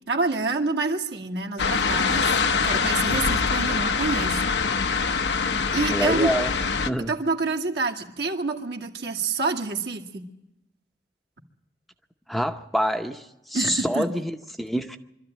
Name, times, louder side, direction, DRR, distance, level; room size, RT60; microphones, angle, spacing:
voice 1, 0.1-4.5 5.7-6.3 7.0-10.3 13.5-14.1, right 3 dB, 70° right, 2.1 m, -27 dB
sound 1, 1.6-6.9, left 5 dB, 75° left, 0.9 m, -24 dB
voice 2, 5.9-6.5 6.9-7.1 12.3-13.2 13.5-15.0, equal, ahead, 0.8 m, -26 dB
24.5 x 13.0 x 9.1 m
head